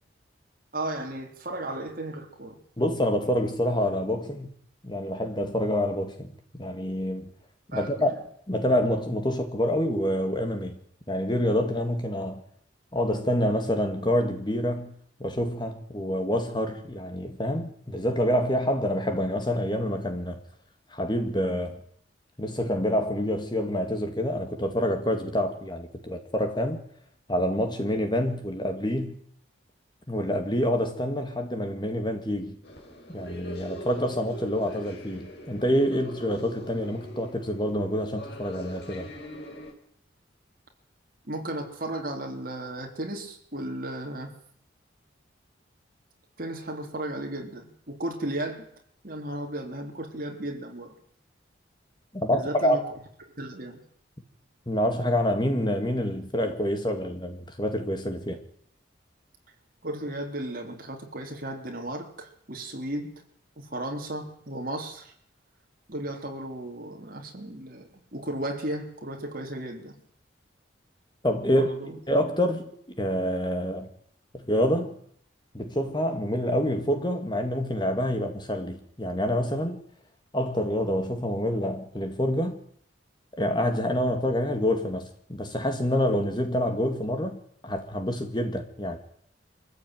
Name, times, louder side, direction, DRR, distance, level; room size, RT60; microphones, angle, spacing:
voice 1, 0.7-2.6 7.7-8.1 41.2-44.3 46.4-48.7 49.0-51.0 52.3-52.8 53.4-53.8 59.8-63.1 63.6-65.1 65.9-70.0 71.5-72.0, right 1 dB, 45° right, 3.8 m, -35 dB
voice 2, 2.8-4.5 4.8-7.3 7.7-8.2 8.5-10.8 11.1-12.4 12.9-14.9 15.2-20.4 20.9-21.8 22.4-26.8 27.3-29.2 30.1-32.6 33.1-39.1 52.1-52.8 54.7-58.4 71.2-73.9 74.3-74.9 75.5-79.8 80.3-82.6 83.4-89.0, equal, 25° left, 2.1 m, -27 dB
sound 1, 32.6-39.7, equal, 55° left, 4.8 m, -42 dB
25.0 x 15.0 x 9.3 m
head